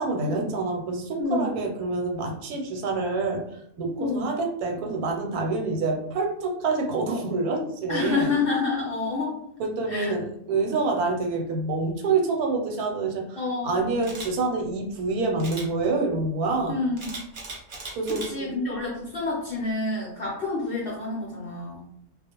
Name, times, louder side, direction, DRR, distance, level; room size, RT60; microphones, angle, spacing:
voice 1, 0.0-8.3 9.6-13.4 13.6-16.8 17.9-18.5, right 3 dB, 85° right, 2 dB, 1.1 m, -27 dB
voice 2, 1.2-1.5 4.0-4.3 7.9-9.4 9.9-10.1 13.4-13.8 16.7-17.2 18.1-21.9, left 3 dB, 60° left, -5 dB, 0.6 m, -28 dB
Camera, 14.0-14.3 15.4-15.7 17.0-18.3 18.8-19.0, right 3 dB, 50° right, 0.7 m, -37 dB
2.4 x 2.1 x 2.8 m, 0.72 s
omnidirectional pair, 1.5 m